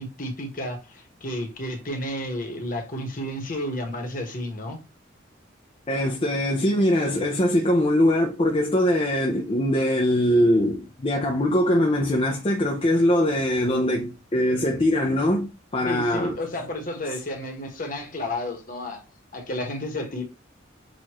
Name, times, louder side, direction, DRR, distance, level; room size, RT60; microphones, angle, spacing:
voice 1, 0.0-4.8 15.8-19.0 19.3-20.2, left 1 dB, 45° left, 1.1 m, -31 dB
voice 2, 5.9-16.4, left 1 dB, 25° left, 0.5 m, -22 dB
6.3 x 2.5 x 3.0 m
head